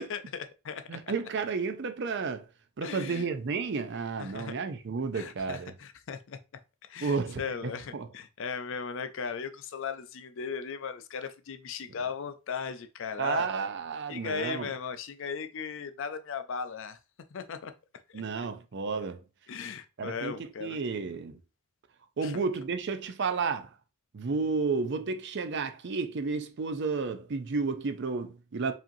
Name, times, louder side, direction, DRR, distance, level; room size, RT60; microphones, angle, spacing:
voice 1, 0.0-0.8 2.8-3.3 4.2-4.5 5.1-6.4 6.9-13.5 14.1-17.0 17.3-17.7 18.1-18.2 19.5-20.8 22.2-22.4, left 6 dB, 60° left, 0.4 m, -37 dB
voice 2, 0.9-2.5 2.8-5.7 7.0-7.4 7.9-8.1 13.2-14.7 18.1-19.2 20.0-21.4 22.2-23.7 24.1-28.7, right 4 dB, 55° right, 0.5 m, -32 dB
4.9 x 2.8 x 2.6 m
head